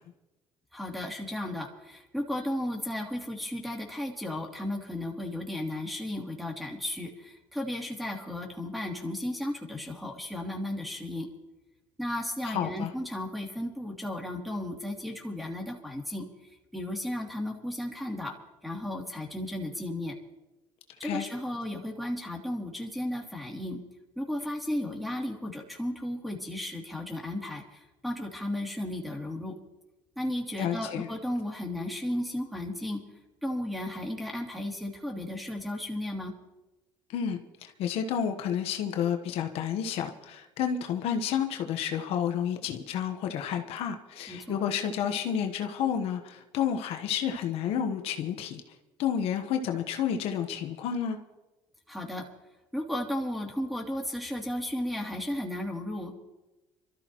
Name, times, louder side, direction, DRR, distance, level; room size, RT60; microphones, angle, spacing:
voice 1, 0.7-11.3 12.0-16.3 16.7-18.3 18.6-20.2 21.0-23.8 24.2-29.6 30.2-33.0 33.4-36.3 44.3-44.6 51.9-52.3 52.7-56.1, left 1 dB, ahead, 1 dB, 2.8 m, -34 dB
voice 2, 12.5-12.9 21.0-21.2 30.6-31.1 37.1-48.6 49.0-51.2, left 8 dB, 70° left, 5 dB, 1.1 m, -30 dB
26.0 x 13.5 x 3.0 m, 1.1 s
supercardioid pair, 90°, 10 cm